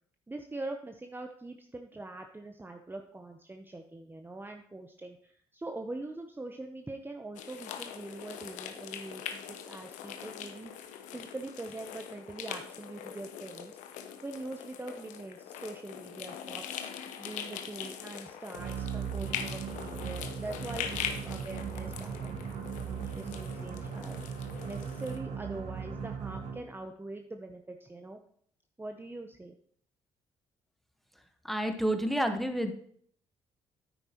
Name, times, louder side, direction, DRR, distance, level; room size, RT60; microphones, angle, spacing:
voice 1, 0.3-10.7 11.1-16.6 17.2-28.2 28.8-29.6, right 2 dB, 15° right, 4 dB, 0.9 m, -43 dB
sound 1, 7.3-25.2, left 9 dB, 80° left, 0.8 m, -42 dB
sound 2, 18.5-26.8, right 7 dB, 65° right, 1.3 m, -38 dB
voice 2, 31.4-32.7, right 1 dB, ahead, 6 dB, 1.3 m, -29 dB
9.3 x 8.8 x 3.0 m, 0.63 s
hypercardioid pair, 55°, 13 cm